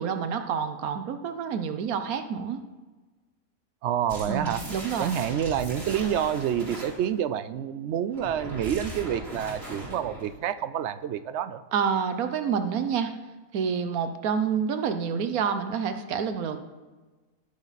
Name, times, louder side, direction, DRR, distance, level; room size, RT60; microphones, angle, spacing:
voice 1, 0.0-2.6 4.3-5.1 11.7-13.1 13.5-16.6, right 7 dB, 85° right, 8 dB, 1.2 m, -28 dB
voice 2, 3.8-4.6 5.0-11.6, right 9 dB, 65° right, 14 dB, 0.7 m, -28 dB
sound 1, 4.1-7.1 8.1-10.3, right 1 dB, 45° right, 3.2 m, -38 dB
19.0 x 6.7 x 4.1 m, 1.3 s
omnidirectional pair, 1.5 m